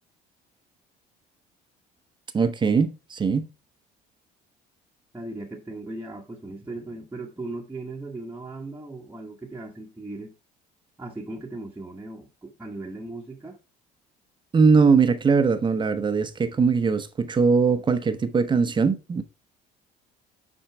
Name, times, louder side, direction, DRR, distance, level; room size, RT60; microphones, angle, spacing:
voice 1, 2.3-3.5 14.5-19.2, right 5 dB, 25° right, 0.8 m, -21 dB
voice 2, 5.1-10.3 11.0-13.6, right 2 dB, 10° right, 1.2 m, -37 dB
8.8 x 4.5 x 3.3 m
cardioid pair, 115°, 18 cm